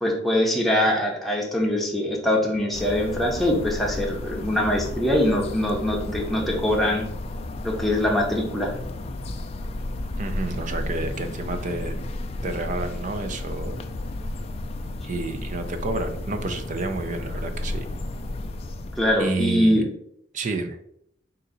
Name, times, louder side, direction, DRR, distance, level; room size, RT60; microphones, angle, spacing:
voice 1, 0.0-7.0 7.6-8.7 19.0-19.9, left 1 dB, ahead, -2 dB, 0.7 m, -23 dB
sound 1, 2.7-19.4, left 2 dB, 35° left, 0.3 m, -33 dB
voice 2, 10.2-12.0 12.4-13.8 15.0-17.9 19.2-19.9 20.3-20.8, right 3 dB, 40° right, 6 dB, 0.4 m, -30 dB
3.8 x 2.6 x 4.0 m, 0.72 s
head